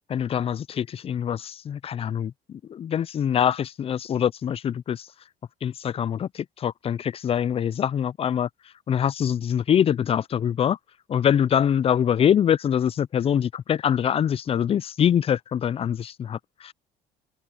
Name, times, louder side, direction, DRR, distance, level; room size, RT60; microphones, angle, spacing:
voice 1, 0.1-5.1 5.6-8.5 8.9-10.8 11.1-16.7, left 9 dB, 35° left, 0.4 m, -24 dB
cardioid pair, 110°, 17 cm